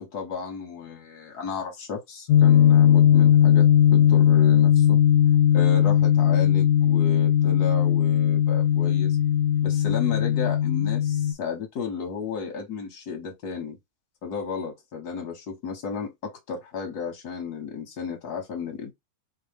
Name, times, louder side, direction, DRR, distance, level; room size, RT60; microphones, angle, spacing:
voice 1, 0.0-5.0 5.5-9.2 9.6-13.8 14.2-18.9, left 6 dB, 85° left, 1.6 m, -33 dB
sound 1, 2.3-11.3, left 10 dB, 70° left, 0.8 m, -18 dB
4.6 x 2.3 x 3.3 m
omnidirectional pair, 1.6 m